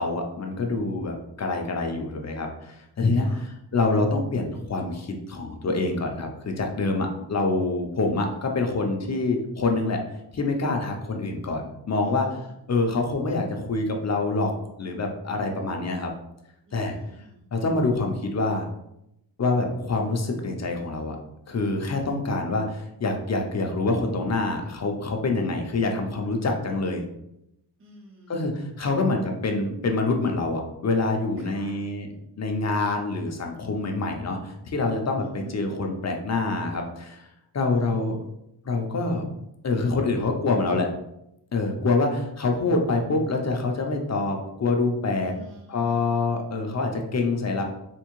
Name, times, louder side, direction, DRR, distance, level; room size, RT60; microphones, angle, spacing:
voice 1, 0.0-10.0 10.3-12.3 12.7-14.5 14.8-16.1 16.7-17.0 17.5-18.7 19.4-21.2 21.5-27.0 28.3-32.1 32.4-37.2 37.5-38.2 38.6-39.2 39.6-40.9 41.5-45.3 45.7-47.6, left 3 dB, 40° left, 3 dB, 0.4 m, -26 dB
voice 2, 3.1-3.5 12.0-12.5 16.7-17.4 27.8-28.4 28.8-28.9 31.4-31.8 35.3-35.6 37.7-38.2 45.2-46.1, equal, 35° right, -2 dB, 0.4 m, -48 dB
3.5 x 2.5 x 3.0 m, 0.82 s
wide cardioid pair, 175°, 42 cm